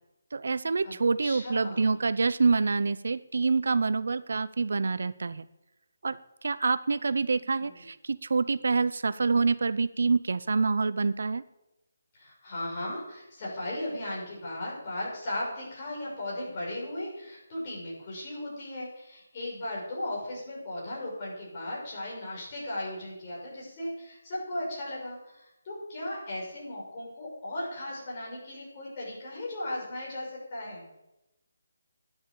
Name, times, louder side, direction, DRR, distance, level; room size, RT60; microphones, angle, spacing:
voice 1, 0.3-5.5 6.0-11.4, right 4 dB, 65° right, 15 dB, 0.6 m, -26 dB
voice 2, 1.2-2.0 7.4-7.8 12.1-30.9, left 1 dB, 25° left, -5 dB, 6.4 m, -37 dB
11.0 x 10.0 x 7.1 m, 0.93 s
hypercardioid pair, 170°, 0 cm